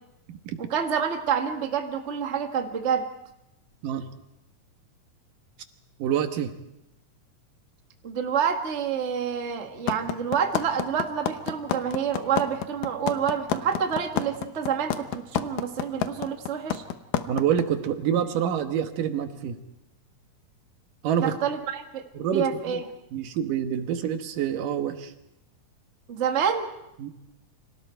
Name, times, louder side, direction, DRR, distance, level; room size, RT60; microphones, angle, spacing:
voice 1, 0.6-3.1 8.0-16.8 21.2-22.0 22.3-22.8 26.1-26.7, right 7 dB, 30° right, 4 dB, 1.4 m, -28 dB
voice 2, 6.0-6.5 17.3-19.6 21.0-21.4 22.1-22.8 23.1-25.1 27.0-27.1, right 9 dB, 75° right, 7 dB, 2.9 m, -27 dB
sound 1, 9.9-17.6, left 10 dB, 80° left, 2.7 m, -27 dB
29.5 x 25.0 x 4.5 m, 0.88 s
omnidirectional pair, 3.9 m